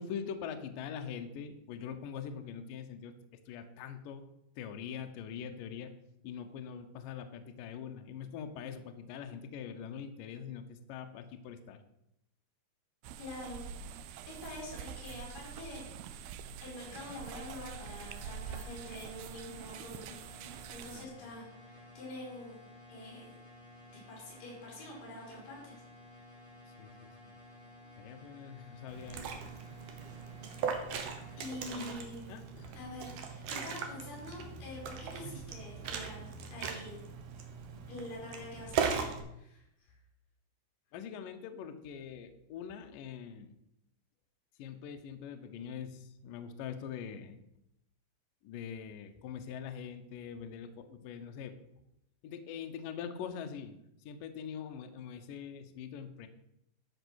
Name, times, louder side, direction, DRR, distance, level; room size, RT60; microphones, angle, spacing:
voice 1, 0.0-3.1 3.5-4.2 4.6-5.9 6.2-11.8 20.9-21.2 26.8-27.3 28.0-29.5 31.7-32.7 40.9-43.6 44.6-47.4 48.4-51.6 52.2-53.8 54.1-56.3, left 7 dB, 75° left, 6 dB, 2.0 m, -43 dB
sound 1, 13.0-21.1, right 8 dB, 85° right, 2.1 m, -45 dB
voice 2, 13.2-13.6 14.3-16.1 16.6-20.2 20.7-22.6 22.9-23.3 23.9-25.8 31.4-32.4 32.7-37.0 37.9-39.6, left 1 dB, 50° left, -4 dB, 5.6 m, -46 dB
sound 2, 16.8-31.7, left 1 dB, 25° left, 1.4 m, -54 dB
Liquid, 28.9-39.2, right 6 dB, 70° right, 2.1 m, -39 dB
12.0 x 5.3 x 6.2 m, 0.81 s
omnidirectional pair, 5.0 m